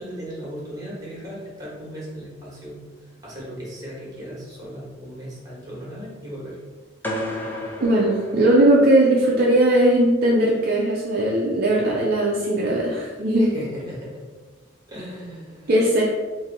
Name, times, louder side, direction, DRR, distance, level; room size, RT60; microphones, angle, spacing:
voice 1, 0.0-2.8 3.2-6.6 13.4-14.2 14.9-15.7, equal, 20° right, -6 dB, 1.2 m, -36 dB
sound 1, 7.0-9.2, left 1 dB, 10° left, 0.4 m, -32 dB
voice 2, 7.8-13.5 15.7-16.0, right 1 dB, 50° right, -4 dB, 0.5 m, -18 dB
2.8 x 2.6 x 3.9 m, 1.3 s
head